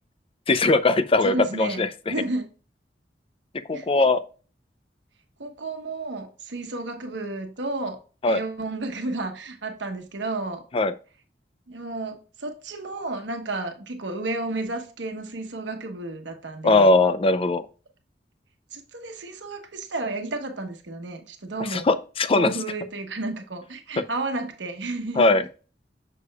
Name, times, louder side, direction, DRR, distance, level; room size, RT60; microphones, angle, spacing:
voice 1, 0.5-1.9 3.7-4.2 8.2-8.4 10.7-10.9 16.6-17.6 21.7-22.5 25.2-25.4, left 2 dB, 30° left, 0.5 m, -20 dB
voice 2, 1.2-2.5 3.7-3.9 5.4-8.0 8.2-10.6 11.7-16.9 18.7-21.9 22.3-25.4, right 2 dB, 90° right, 1.1 m, -32 dB
6.7 x 6.5 x 2.3 m
head